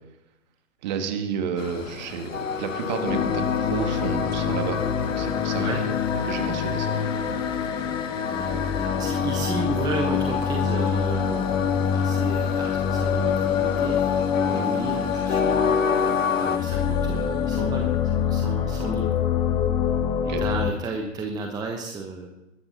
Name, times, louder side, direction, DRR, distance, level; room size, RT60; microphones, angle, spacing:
voice 1, 0.8-4.8 5.0-5.9 6.2-7.0 20.3-20.4, right 6 dB, 35° right, 6 dB, 2.1 m, -31 dB
Train, 1.6-16.6, left 6 dB, 80° left, 0.7 m, -31 dB
sound 1, 3.1-20.7, left 7 dB, 10° left, 0.7 m, -25 dB
voice 2, 8.3-15.5 16.4-18.0 18.3-19.2 20.4-22.3, right 3 dB, 10° right, 2 dB, 1.1 m, -33 dB
20.5 x 13.0 x 4.1 m, 0.96 s
figure-of-eight pair, 120°, 38 cm